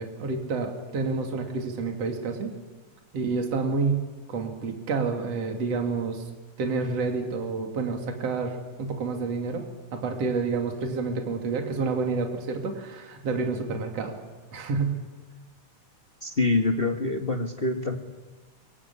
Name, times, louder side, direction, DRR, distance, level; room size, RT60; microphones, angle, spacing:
voice 1, 0.0-2.5 3.1-4.0 4.3-6.2 6.6-9.6 9.9-14.1 14.5-15.0, right 4 dB, 50° right, 3 dB, 3.7 m, -29 dB
voice 2, 16.2-18.0, left 3 dB, 35° left, 4 dB, 0.9 m, -25 dB
24.5 x 23.0 x 9.9 m, 1.3 s
omnidirectional pair, 3.7 m